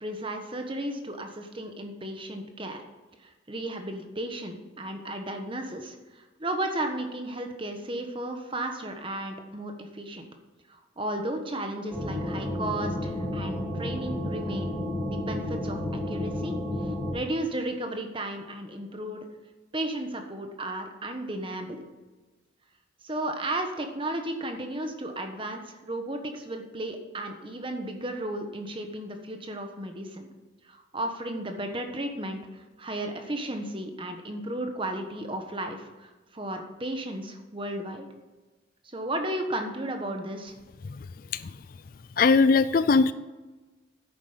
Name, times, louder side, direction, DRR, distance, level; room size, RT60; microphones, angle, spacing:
voice 1, 0.0-2.8 3.2-10.3 10.7-14.7 15.0-16.5 16.8-19.2 19.7-21.8 23.0-30.3 30.6-38.1 38.8-40.5, right 1 dB, 25° right, 5 dB, 1.3 m, -34 dB
sound 1, 11.9-17.1, left 1 dB, 10° right, 3.9 m, -31 dB
voice 2, 42.2-43.1, left 4 dB, 45° left, 14 dB, 0.4 m, -19 dB
10.0 x 8.5 x 5.7 m, 1.2 s
head